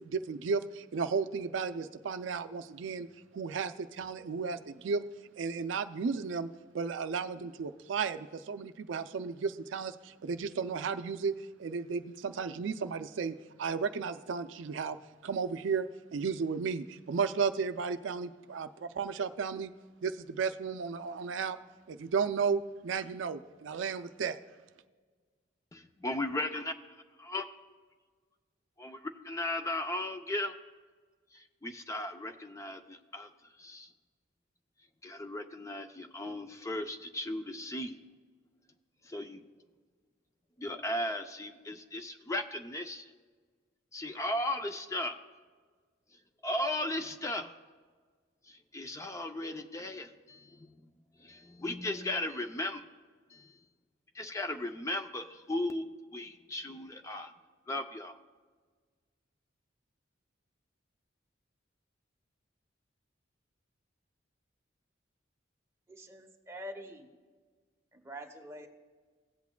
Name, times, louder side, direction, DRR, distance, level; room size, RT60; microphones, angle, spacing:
voice 1, 0.0-3.1 3.3-5.0 5.4-6.5 6.7-11.3 11.6-15.0 15.2-19.7 20.0-21.6 21.9-24.4, right 5 dB, 75° right, 11 dB, 0.4 m, -34 dB
voice 2, 25.7-26.7 27.2-27.5 28.8-30.5 31.3-33.3 33.6-33.9 35.0-38.0 39.0-39.4 40.6-43.1 43.9-45.2 46.4-47.5 48.5-50.7 51.2-52.8 53.3-53.5 54.1-57.3 57.7-58.1, left 1 dB, 15° left, 7 dB, 0.4 m, -36 dB
voice 3, 65.9-67.1 67.9-68.7, equal, 15° right, 2 dB, 0.9 m, -45 dB
17.0 x 8.2 x 2.2 m, 1.5 s
head